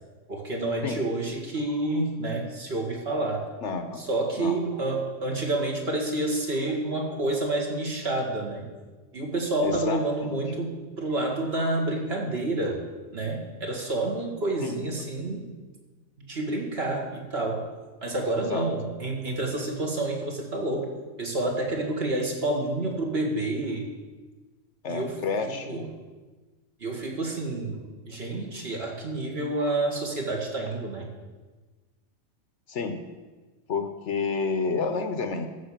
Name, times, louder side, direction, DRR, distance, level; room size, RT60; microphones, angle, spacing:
voice 1, 0.3-3.4 4.0-8.7 9.1-10.7 11.0-12.8 13.1-15.5 16.3-17.6 18.0-20.9 21.2-23.9 24.9-25.2 25.4-25.9 26.8-27.8 28.1-31.1, right 2 dB, 50° right, 0 dB, 2.0 m, -29 dB
voice 2, 3.6-4.1 4.4-4.6 9.6-10.4 14.6-14.8 18.5-18.7 24.8-25.9 32.7-33.0 33.7-35.5, left 4 dB, 65° left, 8 dB, 1.1 m, -30 dB
14.0 x 4.9 x 7.3 m, 1.3 s
omnidirectional pair, 1.4 m